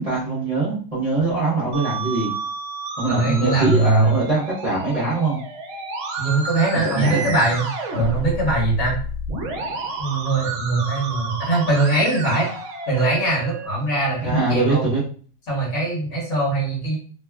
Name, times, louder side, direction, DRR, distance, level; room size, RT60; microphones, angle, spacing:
voice 1, 0.0-2.3 3.0-5.4 6.8-7.3 14.2-15.0, right 3 dB, 30° right, -7 dB, 0.9 m, -22 dB
Musical instrument, 1.7-13.7, right 2 dB, 65° right, 0.9 m, -31 dB
voice 2, 3.1-4.2 6.2-9.0 10.0-12.5 12.9-14.9 15.5-16.9, right 2 dB, 65° left, -5 dB, 1.8 m, -21 dB
3.4 x 2.2 x 2.2 m, 0.42 s
omnidirectional pair, 1.5 m